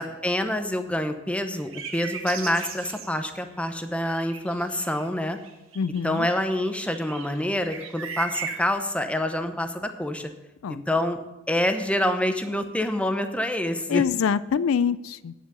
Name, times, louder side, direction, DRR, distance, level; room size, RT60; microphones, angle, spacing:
voice 1, 0.0-5.4 6.0-10.3 10.7-11.2 11.5-14.0, left 1 dB, 5° left, 7 dB, 0.8 m, -27 dB
sound 1, 1.5-3.7 4.1-5.0 5.4-8.7, right 6 dB, 70° right, 1.6 m, -38 dB
voice 2, 5.8-6.3 10.6-10.8 13.9-15.3, left 7 dB, 80° left, 17 dB, 0.4 m, -25 dB
10.0 x 7.5 x 6.8 m, 1.0 s
head